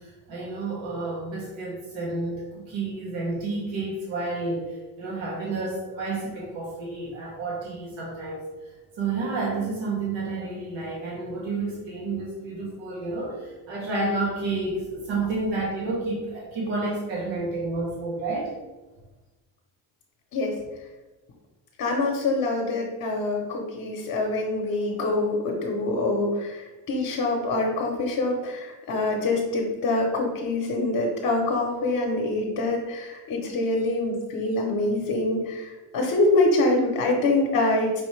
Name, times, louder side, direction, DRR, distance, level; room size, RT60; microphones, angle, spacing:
voice 1, 0.0-8.5 9.0-18.5, right 3 dB, 85° right, -4 dB, 1.2 m, -30 dB
voice 2, 21.8-38.0, left 2 dB, 50° left, -1 dB, 0.8 m, -25 dB
5.1 x 2.7 x 3.2 m, 1.1 s
cardioid pair, 110°, 45 cm